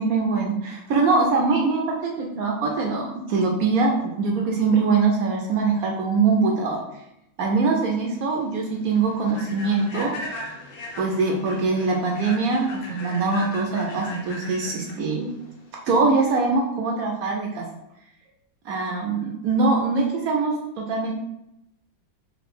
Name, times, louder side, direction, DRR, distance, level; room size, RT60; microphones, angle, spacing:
voice 1, 0.0-6.8 7.4-10.5 11.0-15.3 15.9-17.6 18.6-21.1, right 4 dB, 75° right, 0 dB, 0.8 m, -23 dB
Human voice / Train, 7.6-16.5, left 1 dB, 70° left, 1.4 m, -39 dB
3.6 x 3.2 x 3.5 m, 0.84 s
omnidirectional pair, 2.1 m